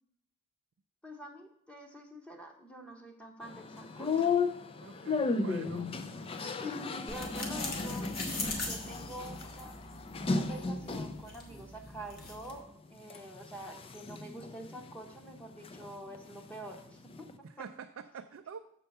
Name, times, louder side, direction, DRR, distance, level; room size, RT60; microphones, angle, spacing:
voice 1, 1.0-4.3 6.6-9.8 10.3-17.3 17.6-17.7, right 1 dB, 5° left, 2 dB, 0.9 m, -46 dB
sound 1, 3.4-11.3 11.8-12.5 13.0-15.9 16.1-17.4, left 4 dB, 25° left, 0.4 m, -35 dB
voice 2, 4.8-5.9 17.4-18.6, right 6 dB, 65° right, 5 dB, 0.4 m, -46 dB
sound 2, 7.1-12.6, left 2 dB, 45° left, 1.4 m, -42 dB
6.7 x 4.5 x 6.5 m, 0.70 s
head